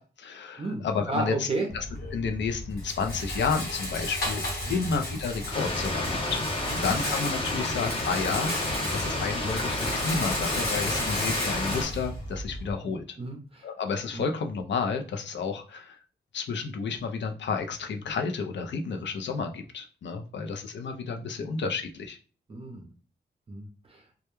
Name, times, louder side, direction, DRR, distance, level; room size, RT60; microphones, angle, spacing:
voice 1, 0.0-1.5 1.7-1.8 2.1-4.4 4.7-6.4 6.8-13.2 13.6-16.0 16.3-22.2, left 5 dB, 75° left, 5 dB, 0.5 m, -31 dB
voice 2, 0.6-1.7 4.7-4.9 6.7-6.9 11.0-11.1 12.8-13.7 14.1-14.3 22.5-22.9 23.5-24.0, right 2 dB, 30° right, 1 dB, 0.5 m, -34 dB
Rattle, 1.7-12.7, left 1 dB, 55° left, 1.1 m, -34 dB
Stream, 5.5-11.9, left 2 dB, 30° left, 0.7 m, -31 dB
2.2 x 2.1 x 3.0 m, 0.38 s
wide cardioid pair, 140°, 19 cm